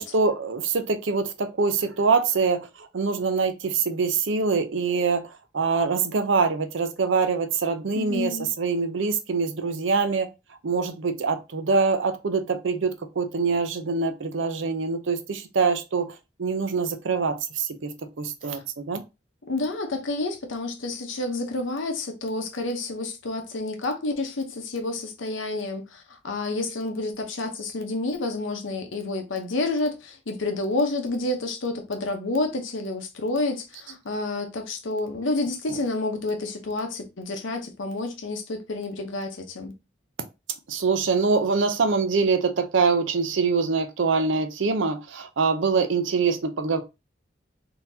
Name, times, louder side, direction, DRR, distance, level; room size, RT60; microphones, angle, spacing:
voice 1, 0.0-10.3 10.6-19.0 35.7-35.8 40.7-46.8, right 4 dB, 80° right, 0.6 m, -24 dB
voice 2, 7.9-8.5 18.5-18.6 19.5-39.7, left 2 dB, 85° left, 0.8 m, -29 dB
3.8 x 2.8 x 2.7 m
head